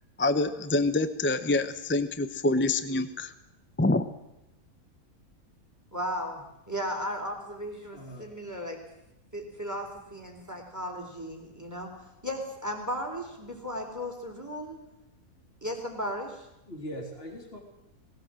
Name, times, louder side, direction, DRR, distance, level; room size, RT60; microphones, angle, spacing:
voice 1, 0.2-3.3 3.8-4.1, left 2 dB, 10° left, 12 dB, 0.7 m, -26 dB
voice 2, 5.9-8.8 9.3-11.9 12.2-14.8 15.6-16.5, equal, 10° right, 1 dB, 3.7 m, -35 dB
voice 3, 7.9-8.3 16.7-17.6, equal, 40° left, 2 dB, 3.5 m, -40 dB
20.0 x 17.5 x 7.6 m, 0.92 s
omnidirectional pair, 1.5 m